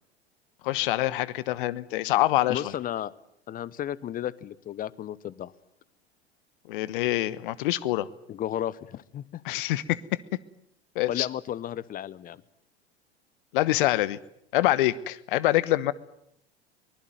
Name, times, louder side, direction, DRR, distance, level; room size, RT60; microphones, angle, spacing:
voice 1, 0.6-2.7 6.7-8.1 9.4-10.0 10.9-11.3 13.5-14.2 14.5-15.9, left 16 dB, 55° left, 19 dB, 1.2 m, -25 dB
voice 2, 2.5-3.1 3.5-5.5 8.3-9.4 11.1-12.4, left 11 dB, 25° left, 21 dB, 0.9 m, -33 dB
23.5 x 20.0 x 9.3 m, 0.74 s
figure-of-eight pair, 80°, 31 cm